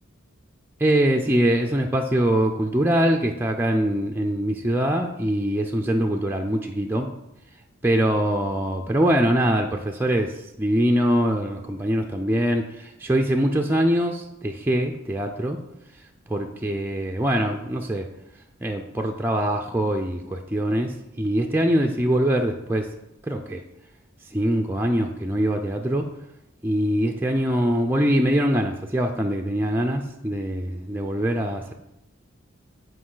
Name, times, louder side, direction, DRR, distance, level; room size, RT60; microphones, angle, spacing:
voice 1, 0.8-7.1 7.8-15.6 16.3-18.1 18.6-22.9 23.2-23.6 24.3-26.1 26.6-31.7, right 1 dB, 10° right, 2 dB, 0.4 m, -23 dB
8.7 x 5.1 x 3.9 m, 0.88 s
head